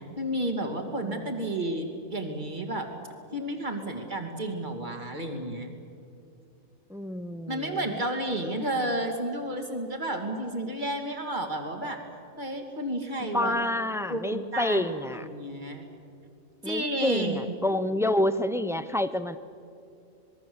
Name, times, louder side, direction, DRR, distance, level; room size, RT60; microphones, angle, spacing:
voice 1, 0.2-2.9 3.3-5.7 7.5-12.0 12.4-13.6 14.1-14.8 15.1-15.9 16.6-17.6, right 1 dB, 35° right, 4 dB, 2.8 m, -31 dB
voice 2, 6.9-7.8 13.3-15.3 16.6-19.4, left 1 dB, 5° right, 12 dB, 0.4 m, -28 dB
26.5 x 21.5 x 8.0 m, 2.5 s
omnidirectional pair, 1.5 m